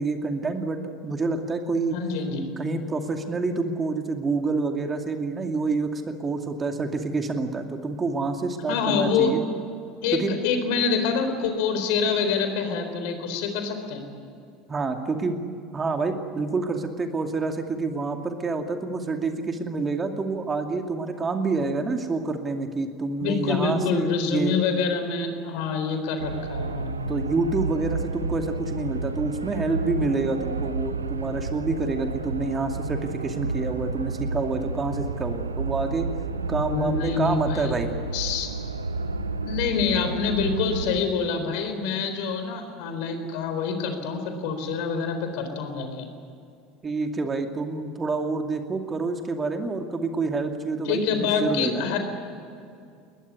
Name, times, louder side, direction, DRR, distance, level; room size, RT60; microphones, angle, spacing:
voice 1, 0.0-2.0 2.6-9.4 10.1-10.4 14.7-15.4 15.7-24.6 27.1-36.1 36.5-37.9 46.8-51.8, right 3 dB, 25° right, 5 dB, 2.5 m, -27 dB
voice 2, 1.9-2.5 8.7-9.4 10.0-14.0 23.2-26.9 36.7-37.7 38.1-38.5 39.4-46.1 50.9-52.0, left 5 dB, 60° left, 7 dB, 4.1 m, -26 dB
sound 1, 26.2-41.0, right 3 dB, 85° right, 1.0 m, -31 dB
21.0 x 21.0 x 9.6 m, 2.5 s
figure-of-eight pair, 70°, 0 cm